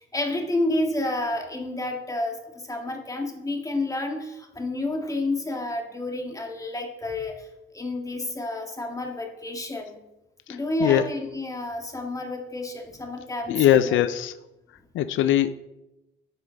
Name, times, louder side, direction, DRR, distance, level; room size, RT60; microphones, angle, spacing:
voice 1, 0.1-7.5 7.7-10.0 10.5-14.0, left 2 dB, 15° left, 2 dB, 1.8 m, -30 dB
voice 2, 10.5-11.0 13.5-14.3 14.9-15.5, left 11 dB, 80° left, 12 dB, 0.5 m, -21 dB
10.0 x 6.6 x 3.9 m, 0.94 s
cardioid pair, 90°, 20 cm